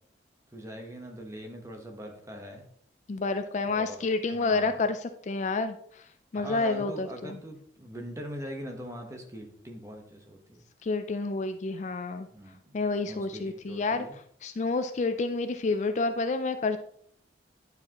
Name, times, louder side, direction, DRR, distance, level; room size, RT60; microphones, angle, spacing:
voice 1, 0.5-2.6 3.6-4.8 6.3-10.6 12.3-12.8 13.1-14.2, equal, 15° right, 3 dB, 1.0 m, -42 dB
voice 2, 3.1-6.0 6.3-7.3 10.8-12.3 12.7-14.1 14.4-16.8, left 3 dB, 40° left, 9 dB, 0.4 m, -29 dB
10.5 x 4.8 x 2.9 m, 0.65 s
head